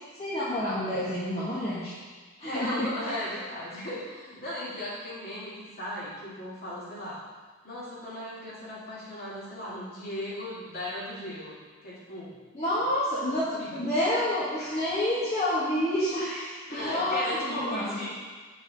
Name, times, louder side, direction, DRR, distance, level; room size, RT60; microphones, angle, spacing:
voice 1, 0.2-1.9 2.4-2.9 12.5-18.0, left 1 dB, 30° left, -10 dB, 1.7 m, -28 dB
voice 2, 2.4-7.2 7.6-12.3 12.8-12.9 13.3-13.9 14.6-14.9 16.7-18.1, left 1 dB, 45° left, -8 dB, 2.9 m, -37 dB
8.6 x 6.1 x 5.4 m, 1.5 s
head